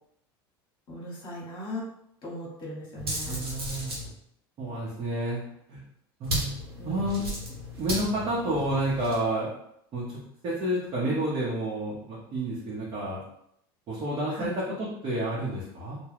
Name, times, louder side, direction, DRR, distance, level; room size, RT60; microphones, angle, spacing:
voice 1, 0.9-1.8 2.2-3.5 6.8-7.1 11.0-11.1 14.3-14.5, equal, 40° left, -4 dB, 1.0 m, -38 dB
sound 1, 3.0-4.1 6.2-9.2, equal, 85° right, 0.9 m, -34 dB
voice 2, 3.3-3.9 4.6-5.4 5.7-5.8 6.2-6.5 6.9-7.3 7.8-9.5 9.9-13.2 13.9-16.0, right 1 dB, 45° right, -7 dB, 0.9 m, -30 dB
2.2 x 2.2 x 3.4 m, 0.74 s
hypercardioid pair, 80°, 13 cm